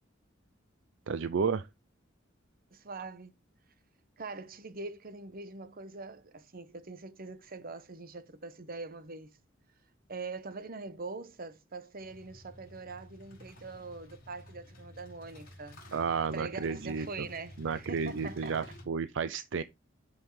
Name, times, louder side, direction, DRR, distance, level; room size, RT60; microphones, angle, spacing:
voice 1, 1.1-1.7 15.9-17.3 17.6-19.6, right 5 dB, 65° right, 0.5 m, -32 dB
voice 2, 2.7-3.3 4.2-9.4 10.1-15.8 16.3-18.7, right 3 dB, 50° right, 1.1 m, -43 dB
sound 1, 11.9-18.8, equal, 50° left, 4.5 m, -52 dB
12.5 x 5.5 x 3.2 m
head